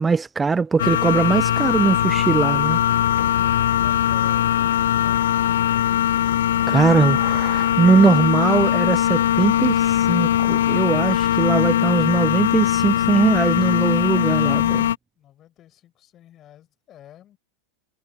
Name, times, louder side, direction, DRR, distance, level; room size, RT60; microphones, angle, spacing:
voice 1, 0.0-2.8 6.2-6.4 6.7-14.9, right 4 dB, 15° right, 0.5 m, -20 dB
sound 1, 0.8-15.0, left 11 dB, 90° left, 0.3 m, -20 dB
voice 2, 3.4-5.2 15.2-17.4, left 12 dB, 35° left, 5.5 m, -49 dB
Mechanisms, 8.0-14.3, left 26 dB, 60° left, 2.8 m, -48 dB
supercardioid pair, 125°, 0 cm